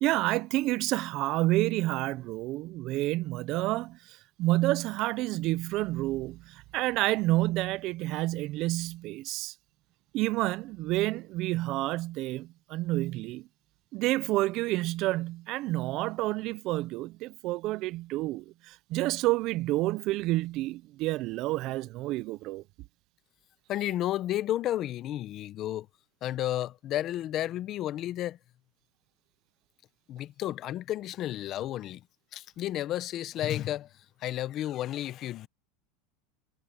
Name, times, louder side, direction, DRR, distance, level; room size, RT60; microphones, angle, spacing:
voice 1, 0.0-9.5 10.1-13.5 13.9-22.6, right 18 dB, 45° right, 0.5 m, -29 dB
voice 2, 23.7-25.9 26.2-28.4 30.1-32.0 32.3-33.9 34.2-35.5, left 13 dB, 40° left, 0.7 m, -32 dB
supercardioid pair, 140°, 0 cm